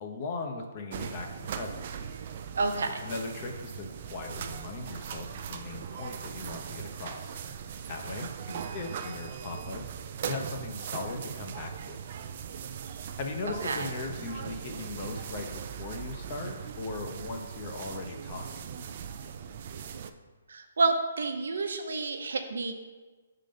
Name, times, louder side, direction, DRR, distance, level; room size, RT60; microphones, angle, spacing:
voice 1, 0.0-1.8 3.0-7.4 7.9-9.8 10.3-12.0 13.2-18.7, left 3 dB, 35° left, 3 dB, 0.7 m, -38 dB
sound 1, 0.9-20.1, right 7 dB, 40° right, 0.4 m, -39 dB
voice 2, 2.6-3.0 8.5-8.8 13.6-13.9 20.5-22.7, right 3 dB, 75° right, 6 dB, 0.8 m, -29 dB
6.3 x 3.8 x 5.1 m, 1.3 s
hypercardioid pair, 165°, 0 cm